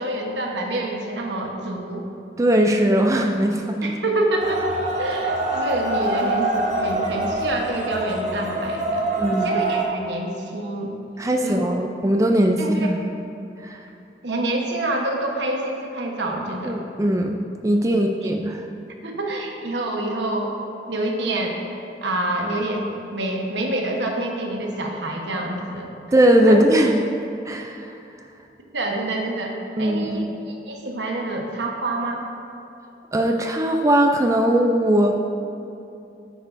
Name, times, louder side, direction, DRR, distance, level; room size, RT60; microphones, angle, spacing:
voice 1, 0.0-2.0 3.8-4.6 5.0-10.9 11.4-11.7 12.6-12.9 14.2-16.8 17.9-18.3 19.0-20.5 20.9-21.6 22.0-25.9 26.5-26.6 28.7-32.2, right 1 dB, 80° right, 1 dB, 1.1 m, -27 dB
voice 2, 2.4-3.9 9.2-9.5 11.2-13.0 13.6-13.8 16.7-17.4 17.6-18.7 26.1-27.0 27.5-27.9 29.8-30.2 33.1-35.2, right 1 dB, 20° right, 3 dB, 0.4 m, -19 dB
sound 1, 4.4-9.8, right 2 dB, 40° right, 1.0 m, -25 dB
9.9 x 9.1 x 2.6 m, 2.7 s
head